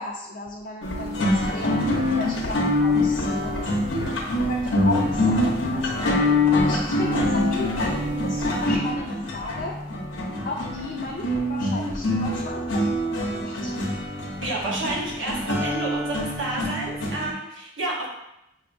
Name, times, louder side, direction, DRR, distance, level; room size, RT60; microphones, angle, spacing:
voice 1, 0.0-3.7 4.4-6.1 6.5-9.8 10.4-12.8 13.1-13.7, left 2 dB, 50° left, -1 dB, 0.4 m, -35 dB
sound 1, 0.8-17.3, left 1 dB, 85° left, 0.8 m, -25 dB
voice 2, 14.4-18.1, right 2 dB, 85° right, -3 dB, 1.1 m, -30 dB
5.6 x 2.6 x 2.6 m, 0.87 s
head